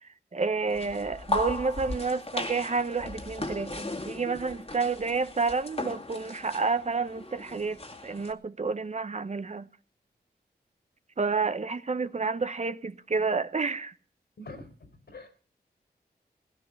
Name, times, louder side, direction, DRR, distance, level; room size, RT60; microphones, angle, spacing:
voice 1, 0.3-9.7 11.2-13.9, right 4 dB, 45° right, 0.9 m, -30 dB
sound 1, 0.7-8.3, left 2 dB, 35° left, 2.1 m, -37 dB
voice 2, 14.4-15.4, left 2 dB, 80° left, 4.2 m, -45 dB
17.5 x 11.0 x 6.9 m
cardioid pair, 65°, 17 cm